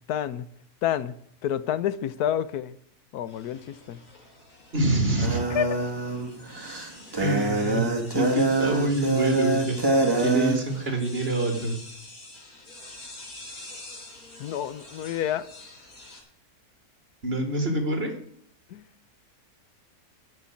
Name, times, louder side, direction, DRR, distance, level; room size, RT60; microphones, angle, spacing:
voice 1, 0.1-0.5 0.8-1.2 1.4-2.8 3.1-4.0 5.5-5.8 14.4-15.5 18.7-18.8, left 10 dB, 85° left, 1.2 m, -28 dB
sound 1, 3.2-16.2, left 2 dB, 70° left, 3.4 m, -46 dB
voice 2, 4.7-5.4 7.1-9.8 10.2-11.8 17.2-18.1, right 2 dB, 40° right, 2.6 m, -26 dB
sound 2, 5.2-10.6, right 2 dB, 15° right, 1.8 m, -25 dB
11.0 x 6.2 x 8.4 m
omnidirectional pair, 1.6 m